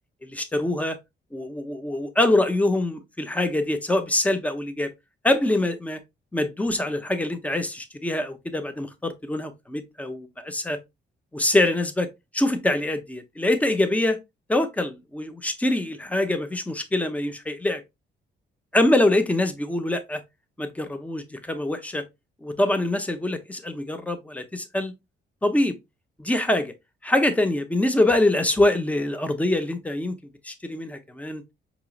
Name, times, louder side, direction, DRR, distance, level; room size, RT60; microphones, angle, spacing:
voice 1, 0.2-1.0 1.3-4.9 5.2-6.0 6.3-10.8 11.3-14.2 14.5-17.8 18.7-20.2 20.6-22.0 22.4-24.9 25.4-25.8 26.2-26.7 27.0-30.2 30.4-31.4, left 1 dB, 5° left, 0.7 m, -24 dB
4.6 x 3.0 x 2.3 m
cardioid pair, 90°, 20 cm